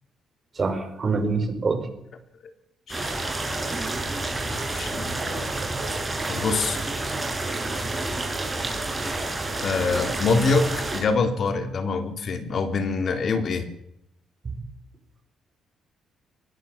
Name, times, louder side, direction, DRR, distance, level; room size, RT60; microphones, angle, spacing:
voice 1, 0.6-1.9, right 4 dB, 35° right, 7 dB, 5.4 m, -25 dB
voice 2, 2.9-3.4 4.7-5.5 6.3-6.8 9.6-13.7, left 4 dB, 55° left, 7 dB, 3.6 m, -25 dB
sound 1, 2.9-11.0, right 2 dB, 20° right, 7.7 m, -29 dB
23.0 x 20.5 x 7.5 m, 0.81 s
cardioid pair, 90°, 0 cm